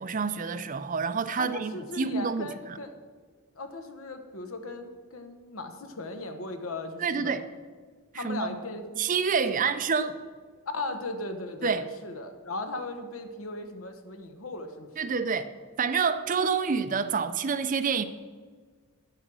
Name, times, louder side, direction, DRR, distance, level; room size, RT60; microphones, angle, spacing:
voice 1, 0.0-2.8 7.0-7.4 8.1-8.6 9.0-10.1 11.6-11.8 15.0-15.5 15.8-18.0, right 5 dB, 35° right, 0.5 m, -28 dB
voice 2, 1.4-2.9 3.5-7.4 8.1-9.0 9.5-9.7 10.7-15.1, left 2 dB, 70° left, 1.2 m, -37 dB
10.0 x 8.1 x 6.2 m
head